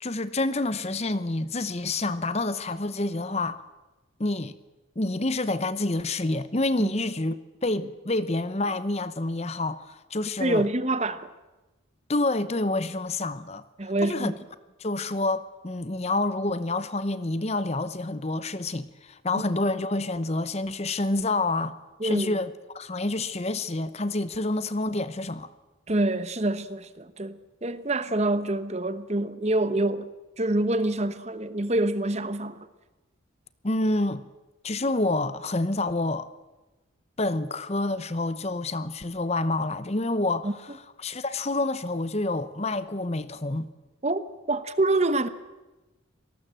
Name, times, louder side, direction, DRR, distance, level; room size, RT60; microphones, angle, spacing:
voice 1, 0.0-3.6 4.2-4.5 5.0-10.7 12.1-13.6 14.0-14.3 14.8-21.7 22.0-25.5 33.6-34.2 34.6-36.3 37.2-40.5 41.0-43.7, left 2 dB, 30° left, 0.8 m, -28 dB
voice 2, 10.4-11.3 13.8-14.4 19.3-19.4 22.0-22.4 25.9-30.1 30.4-32.7 40.4-40.5 44.0-44.2 44.5-45.3, right 2 dB, 30° right, 1.0 m, -26 dB
26.5 x 19.0 x 7.6 m
head